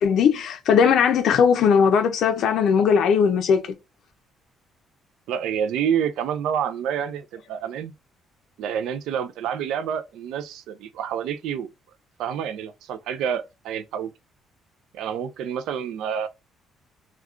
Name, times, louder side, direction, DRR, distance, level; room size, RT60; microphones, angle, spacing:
voice 1, 0.0-3.7, left 7 dB, 60° left, 0.4 m, -19 dB
voice 2, 5.3-7.9 8.6-11.7 12.2-14.1 14.9-16.3, right 8 dB, 85° right, 0.4 m, -28 dB
3.5 x 2.2 x 2.3 m
cardioid pair, 155°, 0 cm